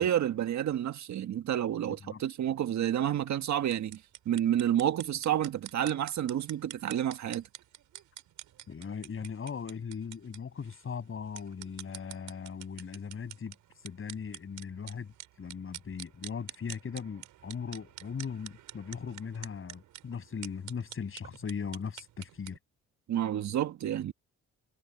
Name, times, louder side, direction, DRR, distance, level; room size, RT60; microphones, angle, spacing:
voice 1, 0.0-7.4 23.1-24.1, right 11 dB, 65° right, 1.6 m, -30 dB
voice 2, 1.9-2.2 8.7-13.5 13.8-22.6, left 6 dB, 45° left, 7.4 m, -39 dB
sound 1, 3.6-22.6, right 13 dB, 80° right, 6.8 m, -48 dB
cardioid pair, 90°, 30 cm